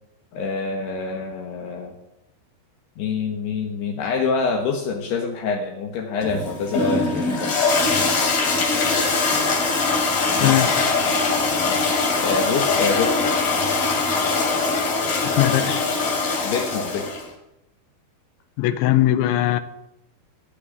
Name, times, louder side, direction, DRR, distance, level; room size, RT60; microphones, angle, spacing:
voice 1, 0.3-2.0 3.0-7.6 10.4-10.6 11.7-13.2 16.4-17.1, left 5 dB, 70° left, 3.2 m, -26 dB
Toilet flush, 6.2-17.3, left 4 dB, 50° left, 4.1 m, -22 dB
voice 2, 15.2-15.9 18.6-19.6, left 14 dB, 90° left, 3.1 m, -20 dB
15.5 x 7.6 x 9.8 m
omnidirectional pair, 5.3 m